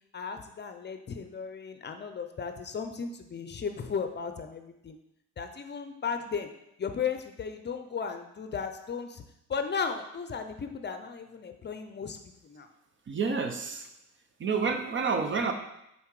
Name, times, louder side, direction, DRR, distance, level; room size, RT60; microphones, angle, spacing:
voice 1, 0.1-5.0 5.4-6.5 6.8-9.2 9.5-12.2 12.4-12.7, left 6 dB, 35° left, 7 dB, 0.6 m, -35 dB
voice 2, 13.1-13.8 14.4-15.5, right 5 dB, 40° right, 6 dB, 0.8 m, -29 dB
5.6 x 4.1 x 4.8 m, 0.83 s
cardioid pair, 90°, 30 cm